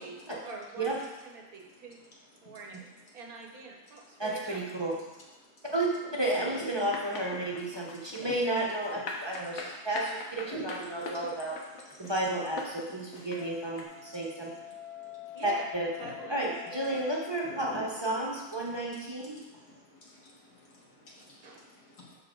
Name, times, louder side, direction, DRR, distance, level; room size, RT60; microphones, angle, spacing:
voice 1, 0.0-2.0 2.4-2.8 3.1-4.6 6.6-6.9 15.0-15.7 16.0-16.4 16.7-16.9 21.1-21.7, right 3 dB, 70° right, 1 dB, 1.6 m, -45 dB
voice 2, 4.2-4.9 5.7-5.9 6.1-11.6 12.0-14.5 15.4-15.9 16.3-19.4, right 1 dB, 20° right, -4 dB, 1.1 m, -32 dB
sound 1, 6.9-13.8, left 3 dB, 60° left, 1.4 m, -41 dB
voice 3, 8.0-8.3 10.5-10.7 15.0-15.3 16.0-16.3 17.6-17.8 19.3-22.2, right 1 dB, 80° left, -4 dB, 2.3 m, -45 dB
Wind instrument woodwind instrument, 13.3-18.0, left 11 dB, 25° left, 2.2 m, -46 dB
12.5 x 4.3 x 3.9 m, 1.1 s
omnidirectional pair, 1.6 m